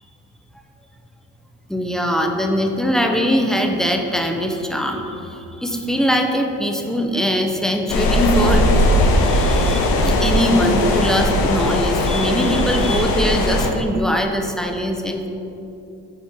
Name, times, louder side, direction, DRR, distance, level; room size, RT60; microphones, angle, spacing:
voice 1, 1.7-8.9 9.2-15.3, equal, ahead, 3 dB, 0.6 m, -21 dB
sound 1, 7.9-13.7, left 1 dB, 85° left, 0.7 m, -18 dB
5.9 x 4.2 x 4.5 m, 2.9 s
cardioid pair, 85°, 35 cm